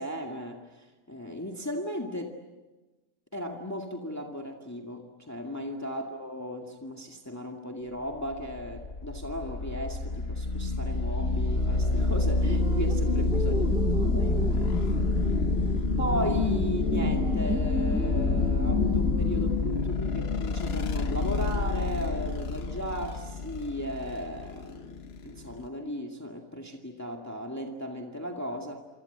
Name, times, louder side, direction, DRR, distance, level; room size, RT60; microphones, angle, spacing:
voice 1, 0.0-2.4 3.3-13.6 14.0-14.9 16.0-28.8, equal, 10° left, 2 dB, 2.1 m, -36 dB
sound 1, 8.3-25.7, left 3 dB, 50° left, 1.3 m, -28 dB
sound 2, 12.5-19.5, right 1 dB, 5° right, 0.6 m, -33 dB
27.5 x 25.5 x 8.1 m, 1.1 s
omnidirectional pair, 1.5 m